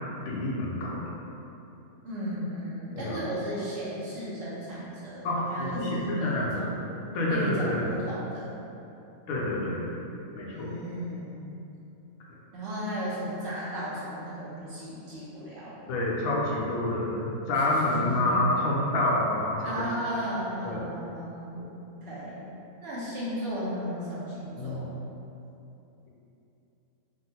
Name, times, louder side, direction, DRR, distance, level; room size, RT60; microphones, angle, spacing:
voice 1, 0.3-1.1 2.9-3.2 5.2-6.7 7.1-7.8 9.3-9.9 10.3-10.7 15.9-19.8 20.6-20.8 21.6-21.7 24.6-24.8, left 1 dB, 75° left, -4 dB, 1.0 m, -28 dB
voice 2, 2.0-6.6 7.3-8.6 10.5-11.6 12.5-15.9 17.7-18.3 19.6-22.4 22.8-25.0, equal, 55° right, -9 dB, 0.9 m, -35 dB
3.6 x 2.1 x 2.7 m, 2.9 s
omnidirectional pair, 1.5 m